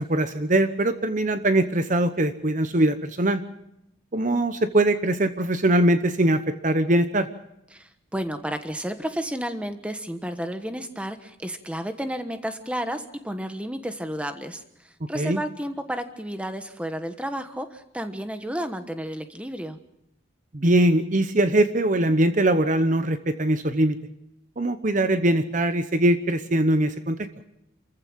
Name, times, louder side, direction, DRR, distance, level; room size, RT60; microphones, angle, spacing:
voice 1, 0.0-3.4 4.1-7.3 15.1-15.4 20.5-24.0 24.6-27.2, right 1 dB, 40° right, 10 dB, 0.9 m, -22 dB
voice 2, 7.7-19.8, equal, 5° right, 8 dB, 1.2 m, -32 dB
28.0 x 15.0 x 7.4 m, 0.82 s
head